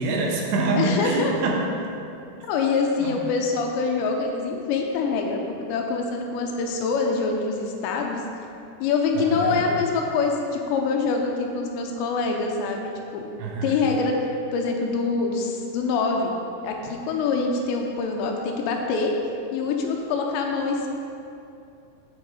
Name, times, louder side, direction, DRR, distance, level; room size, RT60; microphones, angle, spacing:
voice 1, 0.0-1.7 3.0-3.2 9.2-9.7 13.4-13.7, right 2 dB, 80° right, -1 dB, 3.3 m, -25 dB
voice 2, 0.8-1.3 2.5-5.4 5.7-8.2 8.8-13.2 13.6-14.1 14.5-16.3 16.6-19.1 19.5-20.9, left 4 dB, 85° left, 1 dB, 2.9 m, -25 dB
8.4 x 7.2 x 4.7 m, 2.6 s
omnidirectional pair, 5.2 m